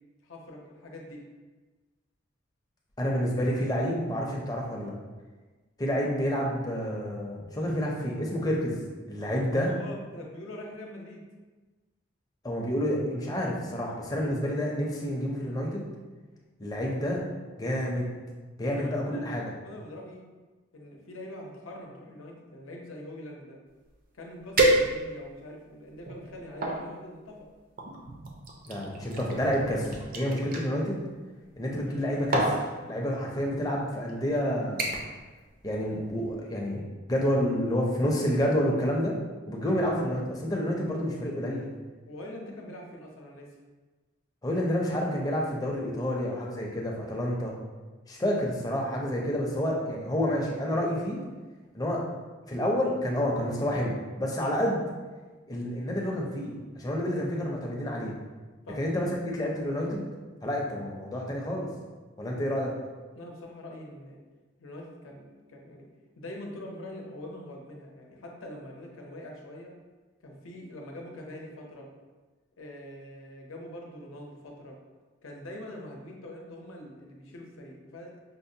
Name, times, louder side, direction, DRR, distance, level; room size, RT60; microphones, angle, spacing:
voice 1, 0.2-1.2 9.7-11.2 18.7-19.4 19.6-20.2 20.7-23.6 24.1-27.5 42.1-43.5 58.7-59.1 63.1-64.2 64.6-65.9 66.2-69.7 70.2-71.9 72.6-74.8 75.2-78.1, left 1 dB, 90° left, 0 dB, 0.7 m, -44 dB
voice 2, 3.0-4.9 5.8-8.8 9.1-9.7 12.4-15.9 16.6-17.2 17.6-18.1 18.6-19.4 28.7-31.0 31.6-34.9 35.6-39.1 39.5-41.7 44.4-47.5 48.1-51.2 51.7-52.0 52.5-54.8 55.5-58.1 58.8-60.1 60.4-61.7 62.2-62.7, equal, 20° left, -2 dB, 0.5 m, -29 dB
sound 1, 23.9-24.0 24.6-25.3 25.9-26.8 27.8-30.7 31.8-32.0 32.3-32.6 33.5-33.7 34.1-34.4 34.8-35.2 35.5-35.9 36.2-36.3, right 1 dB, 45° right, 0.4 m, -28 dB
5.3 x 2.0 x 2.7 m, 1.3 s
head